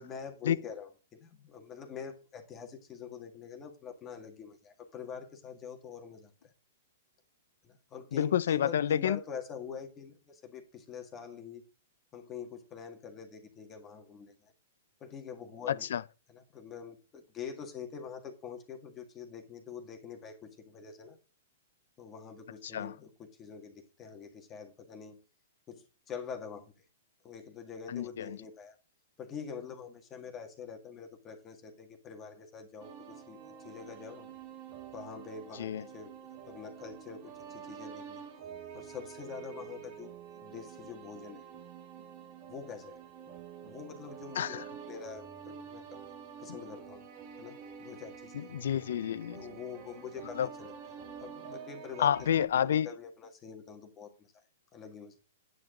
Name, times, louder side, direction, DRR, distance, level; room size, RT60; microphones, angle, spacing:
voice 1, 0.0-6.3 7.6-11.6 12.1-14.5 15.0-15.9 16.3-21.2 22.0-25.2 25.7-26.7 27.2-28.8 29.2-33.4 33.6-34.3 34.9-38.2 38.7-40.1 40.4-41.4 42.5-42.9 43.6-46.0 46.4-47.1 47.4-48.5 49.3-50.7 51.2-52.1 52.5-54.3 54.7-55.2, left 6 dB, 20° left, 1.8 m, -45 dB
voice 2, 8.1-9.2 15.7-16.0 22.7-22.9 27.9-28.4 35.6-35.8 44.4-44.6 48.3-49.4 50.4-50.5 52.0-52.9, left 9 dB, 70° left, 0.6 m, -29 dB
sound 1, 32.8-52.4, right 7 dB, 40° right, 2.3 m, -48 dB
9.5 x 7.8 x 3.8 m
hypercardioid pair, 150°, 0 cm